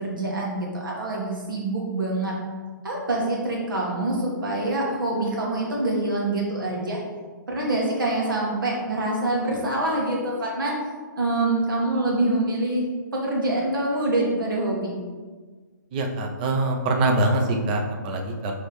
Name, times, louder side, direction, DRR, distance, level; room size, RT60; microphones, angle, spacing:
voice 1, 0.0-2.3 2.8-7.0 7.5-10.7 11.2-12.8 13.1-14.9, right 2 dB, 90° right, -3 dB, 1.5 m, -25 dB
voice 2, 15.9-18.5, right 2 dB, 25° right, 3 dB, 0.5 m, -24 dB
4.9 x 3.3 x 3.0 m, 1.4 s
hypercardioid pair, 160°, 11 cm